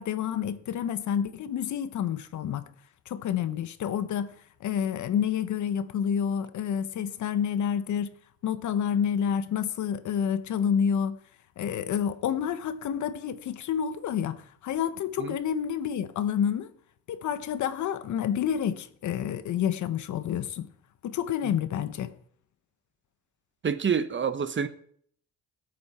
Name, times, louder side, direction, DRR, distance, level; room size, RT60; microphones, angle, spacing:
voice 1, 0.0-2.7 3.1-4.3 4.6-8.1 8.4-11.2 11.6-16.7 17.1-20.7 21.0-22.1, left 8 dB, 70° left, 1.1 m, -29 dB
voice 2, 23.6-24.7, right 6 dB, 40° right, 1.3 m, -27 dB
24.0 x 8.7 x 4.4 m
cardioid pair, 90°, 30 cm